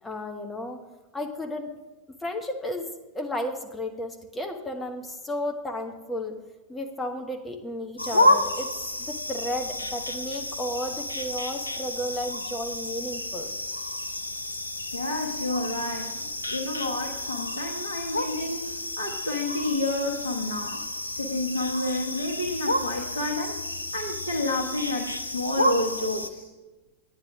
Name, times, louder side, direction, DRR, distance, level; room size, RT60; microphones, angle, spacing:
voice 1, 0.0-0.8 1.1-1.7 2.1-2.9 3.1-6.4 6.7-13.5, left 1 dB, 10° left, 3 dB, 1.1 m, -33 dB
sound 1, 8.0-26.3, left 1 dB, 80° left, 0.5 m, -30 dB
voice 2, 14.9-20.8 21.1-23.6 23.9-26.5, left 2 dB, 65° left, -1 dB, 1.1 m, -30 dB
11.0 x 9.3 x 3.6 m, 1.2 s
figure-of-eight pair, 90°, 0 cm